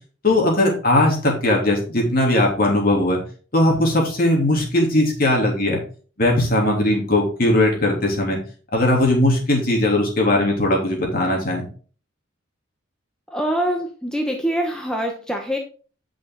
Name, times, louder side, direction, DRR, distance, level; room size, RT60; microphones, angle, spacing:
voice 1, 0.2-3.2 3.5-5.8 6.2-8.4 8.7-11.6, left 1 dB, 45° left, -1 dB, 3.1 m, -19 dB
voice 2, 13.3-15.6, equal, 5° left, 1 dB, 0.9 m, -24 dB
9.1 x 6.2 x 3.8 m, 0.39 s
head